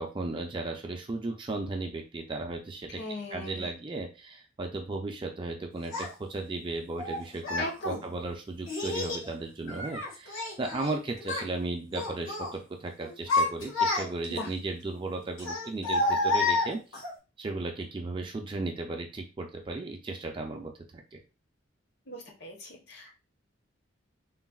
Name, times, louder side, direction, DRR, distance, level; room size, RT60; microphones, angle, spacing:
voice 1, 0.0-3.0 3.3-17.0 17.4-20.7 21.1-21.2, right 2 dB, 25° right, 3 dB, 0.4 m, -35 dB
voice 2, 2.9-3.7 7.6-8.1 14.3-14.5 22.1-23.1, left 1 dB, 55° left, 1 dB, 0.7 m, -38 dB
Child speech kid speaking, 5.9-6.1 7.0-7.7 8.7-9.3 9.7-10.9 11.2-11.5 11.9-12.5 13.0-14.4 15.4-17.1, left 3 dB, 80° left, 1.3 m, -29 dB
3.8 x 2.0 x 2.2 m, 0.31 s
head